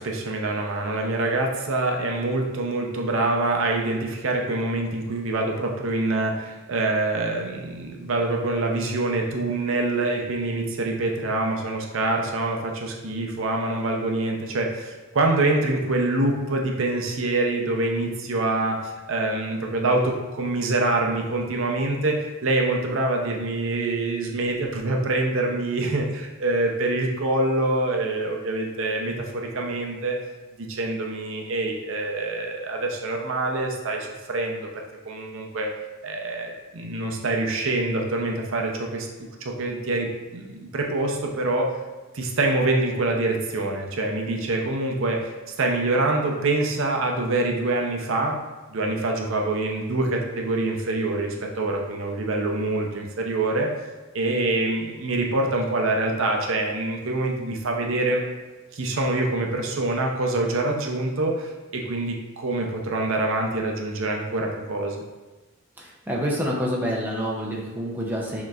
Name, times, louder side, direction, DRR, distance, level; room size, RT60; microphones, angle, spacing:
voice 1, 0.0-30.2 30.6-35.7 36.0-39.1 39.4-41.8 42.1-48.4 48.7-53.7 54.1-58.2 58.7-65.0, right 2 dB, 65° right, 1 dB, 0.6 m, -25 dB
voice 2, 65.8-68.4, equal, 10° right, -3 dB, 0.6 m, -27 dB
6.4 x 3.0 x 2.4 m, 1.2 s
head